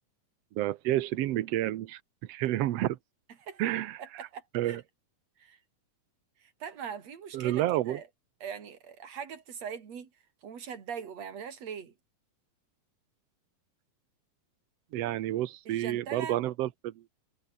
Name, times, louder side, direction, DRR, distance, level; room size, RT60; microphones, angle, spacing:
voice 1, 0.5-2.0 2.3-3.0 3.6-4.0 4.5-4.8 7.3-8.0 14.9-16.9, right 14 dB, 90° right, 1.4 m, -29 dB
voice 2, 4.0-4.8 5.4-5.6 6.4-8.1 8.4-10.1 10.4-11.9 15.7-16.4, right 7 dB, 50° right, 3.9 m, -41 dB
omnidirectional pair, 4.1 m